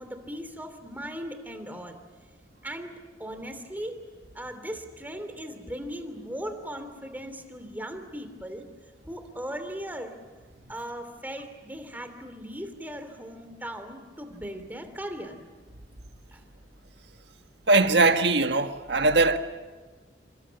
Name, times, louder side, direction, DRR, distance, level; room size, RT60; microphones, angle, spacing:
voice 1, 0.0-2.0 2.6-2.9 3.2-4.0 4.3-8.7 9.1-10.1 10.7-15.4 16.3-16.4, equal, 10° right, 2.9 m, -38 dB
voice 2, 17.7-19.4, right 3 dB, 75° right, 1.6 m, -21 dB
28.5 x 26.5 x 7.1 m
head